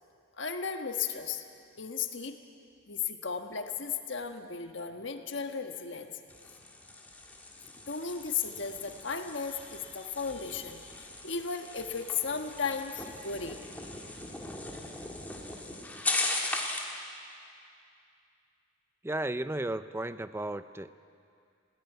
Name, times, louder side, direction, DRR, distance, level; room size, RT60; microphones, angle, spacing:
voice 1, 0.4-1.4 1.8-2.4 2.9-6.1 7.9-13.6, left 6 dB, 65° left, 5 dB, 1.5 m, -35 dB
sound 1, 6.3-17.0, left 2 dB, 10° left, 1.8 m, -38 dB
voice 2, 19.0-20.9, right 1 dB, 10° right, 12 dB, 0.5 m, -34 dB
21.0 x 17.5 x 9.2 m, 2.5 s
head